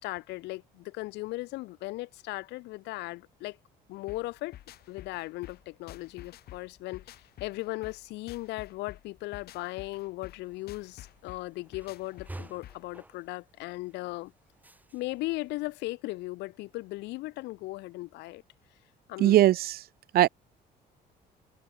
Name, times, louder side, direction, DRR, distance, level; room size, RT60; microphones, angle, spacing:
voice 1, 0.0-3.6 3.9-4.6 4.9-7.0 7.4-14.3 14.9-18.4 19.1-19.4, left 20 dB, 90° left, 2.7 m, -37 dB
sound 1, 4.1-13.0, left 13 dB, 70° left, 5.3 m, -50 dB
sound 2, 10.4-15.9, right 2 dB, 10° right, 7.5 m, -51 dB
voice 2, 19.2-19.8 20.1-20.3, right 14 dB, 65° right, 0.8 m, -20 dB
cardioid pair, 110°, 17 cm